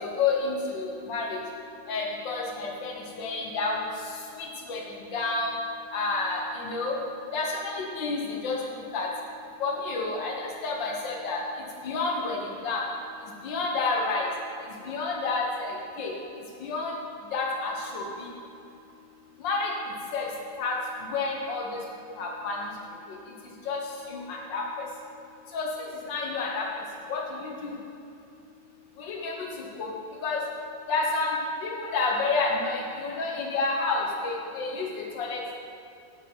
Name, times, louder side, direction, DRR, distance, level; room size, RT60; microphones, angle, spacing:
voice 1, 0.0-1.4 1.9-3.8 4.4-5.5 5.9-7.0 7.3-8.6 8.9-9.1 9.6-11.4 11.8-12.8 13.4-14.3 14.9-16.1 16.6-16.9 17.3-18.3 19.4-19.7 20.1-20.3 20.6-20.8 21.1-21.8 22.2-22.6 23.7-23.8 24.1-24.6 25.5-25.7 26.1-26.7 27.1-27.7 29.0-29.3 29.8-29.9 30.2-30.4 30.9-34.9 35.1-35.4, left 3 dB, 80° left, -1 dB, 1.9 m, -29 dB
8.3 x 8.1 x 4.5 m, 2.8 s
omnidirectional pair, 2.0 m